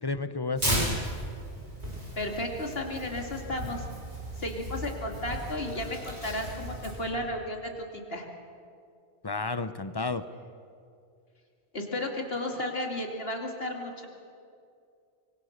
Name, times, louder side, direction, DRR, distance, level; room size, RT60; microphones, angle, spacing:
voice 1, 0.0-1.0 9.2-10.2, left 3 dB, 25° left, 12 dB, 0.8 m, -31 dB
Tearing, 0.6-7.1, right 1 dB, 80° right, 7.5 m, -35 dB
voice 2, 2.2-3.8 4.4-8.3 11.7-14.1, left 1 dB, 60° left, 2 dB, 2.9 m, -33 dB
24.0 x 23.5 x 6.7 m, 2.4 s
omnidirectional pair, 1.1 m